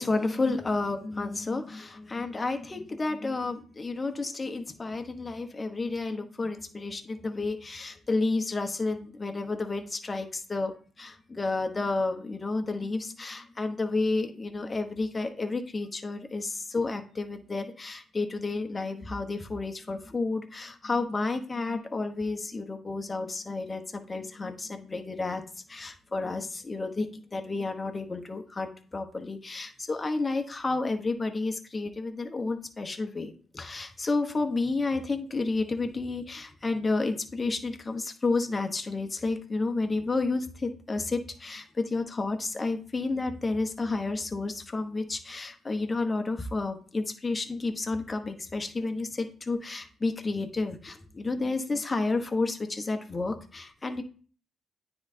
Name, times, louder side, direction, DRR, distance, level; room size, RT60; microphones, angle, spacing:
voice 1, 0.0-10.7 11.0-25.4 25.7-54.0, left 3 dB, 25° left, 6 dB, 1.0 m, -31 dB
9.5 x 3.8 x 2.7 m, 0.40 s
cardioid pair, 90°, 0 cm